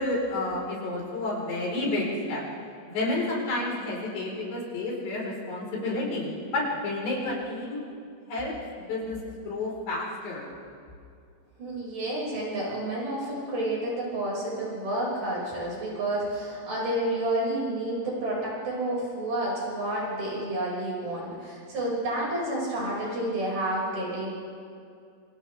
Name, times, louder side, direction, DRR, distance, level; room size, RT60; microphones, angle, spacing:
voice 1, 0.0-2.4 2.9-7.8 8.3-10.4, left 2 dB, 80° left, -3 dB, 6.7 m, -30 dB
voice 2, 11.6-24.3, right 1 dB, 50° right, -6 dB, 7.6 m, -30 dB
27.5 x 27.0 x 3.5 m, 2.3 s
omnidirectional pair, 4.8 m